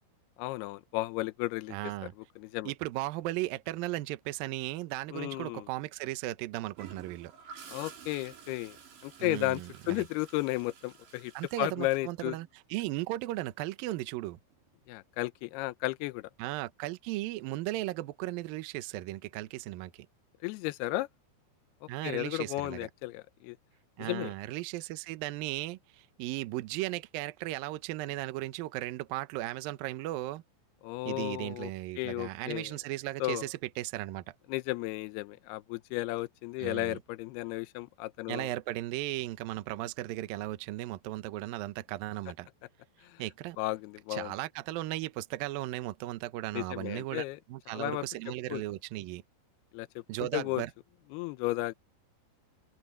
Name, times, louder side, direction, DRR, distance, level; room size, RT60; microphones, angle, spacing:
voice 1, 0.4-1.8 2.4-2.7 5.1-5.7 7.7-8.8 9.0-9.6 9.9-11.3 11.6-12.4 14.9-16.3 20.4-21.1 21.8-23.6 24.0-24.3 30.8-31.7 32.0-32.8 33.2-33.5 34.5-38.5 43.0-43.2 43.6-44.3 46.5-47.4 47.7-48.1 48.5-48.6 49.7-49.9 50.3-50.6 51.1-51.7, left 19 dB, 90° left, 2.2 m, -34 dB
voice 2, 1.7-2.1 2.7-7.3 9.2-10.1 11.3-14.4 16.4-20.1 21.9-22.9 24.0-30.4 31.1-34.3 36.6-37.0 38.3-42.5 43.2-43.6 44.1-49.2 50.1-50.7, right 16 dB, 85° right, 2.0 m, -36 dB
Gurgling / Toilet flush, 6.8-12.5 14.5-14.7, right 7 dB, 65° right, 6.7 m, -51 dB
open air
omnidirectional pair, 5.4 m